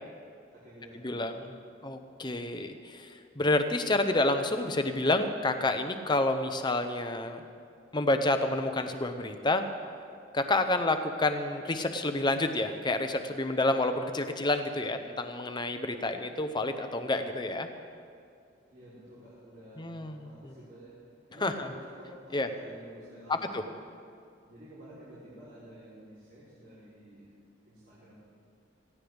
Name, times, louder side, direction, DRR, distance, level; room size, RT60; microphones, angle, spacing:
voice 1, 0.5-1.3 18.7-20.9 21.3-23.7 24.4-27.2 27.7-28.1, equal, 50° right, -10 dB, 3.9 m, -50 dB
voice 2, 1.0-1.5 1.8-7.4 7.9-9.6 10.3-17.7 19.8-20.5 21.4-21.7 22.3-22.5 23.3-23.6, left 2 dB, 25° left, 7 dB, 0.8 m, -29 dB
18.0 x 15.5 x 3.5 m, 2.4 s
head